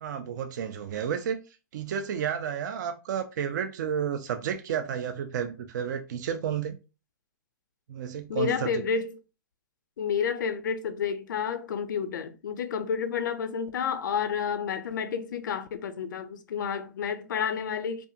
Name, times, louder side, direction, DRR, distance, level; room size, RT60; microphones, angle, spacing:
voice 1, 0.0-1.4 1.7-6.8 7.9-8.7 9.0-9.1, right 8 dB, 65° right, 0.4 m, -31 dB
voice 2, 8.3-9.1 10.0-18.1, left 6 dB, 75° left, 0.5 m, -30 dB
2.5 x 2.3 x 2.7 m
hypercardioid pair, 125°, 10 cm